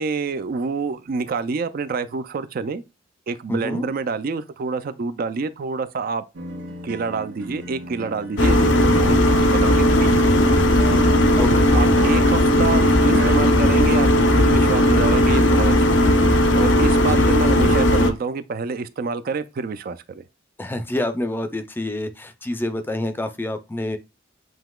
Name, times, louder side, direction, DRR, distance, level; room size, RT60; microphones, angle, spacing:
voice 1, 0.0-2.8 3.3-6.2 6.8-10.4 11.3-16.2 16.5-20.2, right 4 dB, 50° right, 0.4 m, -27 dB
voice 2, 3.5-3.9 11.4-11.7 17.1-17.3 20.6-24.0, left 1 dB, 10° left, 0.5 m, -27 dB
sound 1, 6.3-13.3, right 2 dB, 80° right, 1.4 m, -34 dB
sound 2, 8.4-18.1, left 1 dB, 75° left, 0.7 m, -16 dB
7.8 x 2.8 x 2.3 m
head